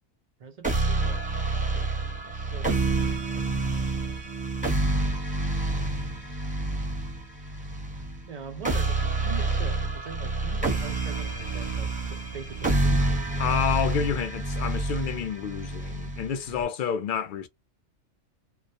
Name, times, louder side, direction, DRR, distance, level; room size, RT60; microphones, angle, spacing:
voice 1, 0.4-3.6 6.7-6.9 8.0-13.6, right 6 dB, 90° right, 0.3 m, -43 dB
sound 1, 0.6-16.6, right 2 dB, 5° right, 0.7 m, -28 dB
voice 2, 13.4-17.5, left 8 dB, 65° left, 0.5 m, -29 dB
2.3 x 2.0 x 2.6 m
omnidirectional pair, 1.3 m